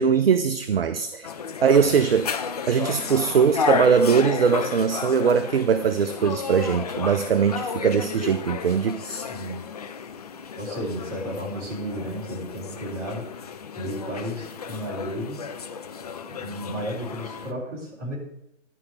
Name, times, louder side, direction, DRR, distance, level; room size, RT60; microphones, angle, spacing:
voice 1, 0.0-1.3 1.6-2.3 2.7-9.3, right 6 dB, 55° right, 11 dB, 0.6 m, -21 dB
sound 1, 1.2-17.5, left 6 dB, 35° left, 0.5 m, -33 dB
voice 2, 9.3-9.7 10.6-13.3 13.8-15.4 16.3-18.2, equal, 30° right, -4 dB, 3.8 m, -33 dB
11.0 x 4.9 x 7.9 m, 0.81 s
figure-of-eight pair, 135°, 36 cm